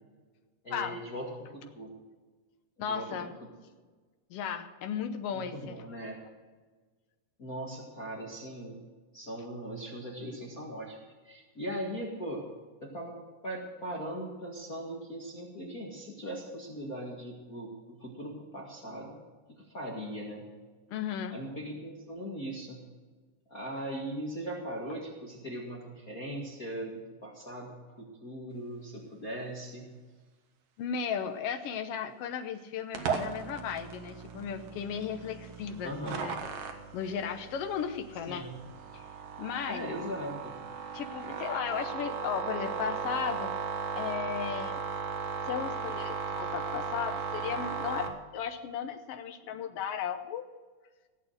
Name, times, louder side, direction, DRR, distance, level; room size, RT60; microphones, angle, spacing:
voice 1, 0.6-1.9 2.8-3.1 5.3-6.2 7.4-8.8 9.1-11.0 11.2-12.4 12.8-13.1 13.4-19.1 19.5-20.5 21.3-22.8 23.5-29.9 35.8-36.2 38.3-38.6 39.7-40.6, right 1 dB, 35° left, -3 dB, 1.8 m, -39 dB
voice 2, 2.8-3.3 4.3-5.8 20.9-21.4 30.8-36.4 36.9-38.5 38.9-39.0 39.4-39.9 40.9-43.5 44.0-44.8 45.5-50.4, left 7 dB, 75° left, 7 dB, 1.4 m, -35 dB
sound 1, 33.0-48.1, right 6 dB, 90° right, 3.1 m, -37 dB
16.5 x 8.6 x 6.5 m, 1.4 s
omnidirectional pair, 3.9 m